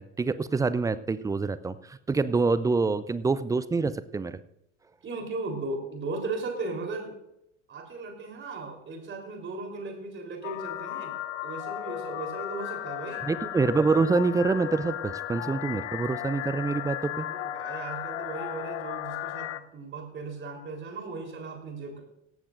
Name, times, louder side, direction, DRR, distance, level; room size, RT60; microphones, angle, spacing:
voice 1, 0.0-4.4 13.2-17.3, right 4 dB, 10° right, 15 dB, 0.5 m, -26 dB
voice 2, 5.0-7.2 7.7-11.1 11.4-13.3 17.2-22.0, right 3 dB, 30° right, 3 dB, 4.0 m, -37 dB
sound 1, 10.4-19.6, left 13 dB, 65° left, 0.8 m, -35 dB
17.5 x 14.0 x 2.6 m, 0.80 s
hypercardioid pair, 80°, 38 cm